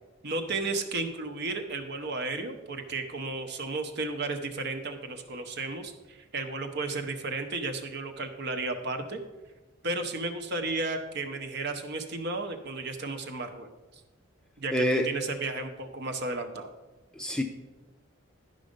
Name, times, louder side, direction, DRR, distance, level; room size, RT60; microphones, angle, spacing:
voice 1, 0.2-9.2 9.8-13.7 14.6-14.7 15.0-16.7, right 3 dB, 55° right, 6 dB, 0.8 m, -33 dB
voice 2, 14.7-15.1 17.1-17.4, equal, 5° left, 4 dB, 0.5 m, -26 dB
11.0 x 5.2 x 5.2 m, 1.2 s
head